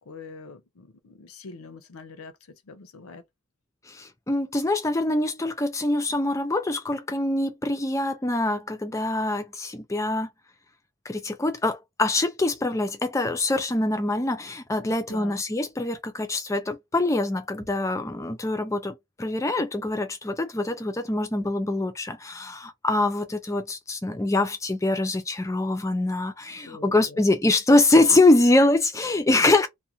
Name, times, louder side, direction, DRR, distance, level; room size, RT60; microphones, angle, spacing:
voice 1, 0.1-2.3 2.7-3.2 14.8-15.4 26.6-27.2, left 4 dB, 85° left, 0.6 m, -43 dB
voice 2, 3.9-10.3 11.1-29.7, left 2 dB, 15° left, 0.4 m, -24 dB
2.5 x 2.1 x 2.7 m
head